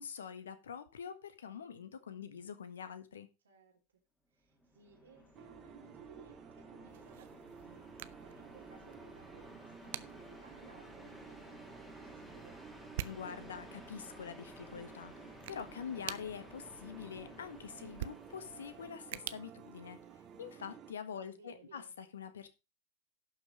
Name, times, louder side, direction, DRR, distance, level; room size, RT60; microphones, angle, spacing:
voice 1, 0.0-3.3 13.0-20.0 20.4-22.5, left 7 dB, 65° left, 1.4 m, -45 dB
voice 2, 3.4-3.8 4.3-12.6 21.1-21.9, right 5 dB, 70° right, 2.8 m, -61 dB
sound 1, 4.5-18.9, left 1 dB, 5° left, 3.0 m, -55 dB
sound 2, 5.3-20.9, right 8 dB, 30° right, 1.8 m, -54 dB
sound 3, 6.9-20.5, right 14 dB, 50° right, 0.6 m, -50 dB
11.5 x 6.0 x 5.2 m
figure-of-eight pair, 90°, 0 cm